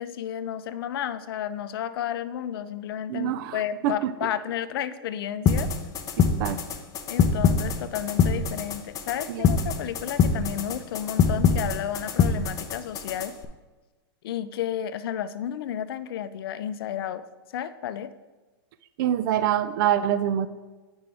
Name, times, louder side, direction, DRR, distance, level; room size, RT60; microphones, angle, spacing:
voice 1, 0.0-5.7 7.1-13.3 14.2-17.2 17.5-18.1, left 10 dB, 70° left, 13 dB, 0.5 m, -32 dB
voice 2, 3.1-3.6 3.8-3.9 6.4-6.6 9.3-9.5 19.0-20.5, right 10 dB, 55° right, 13 dB, 0.5 m, -24 dB
sound 1, 5.5-13.4, left 6 dB, 25° left, 0.6 m, -24 dB
8.9 x 5.2 x 3.4 m, 1.2 s
hypercardioid pair, 130°, 13 cm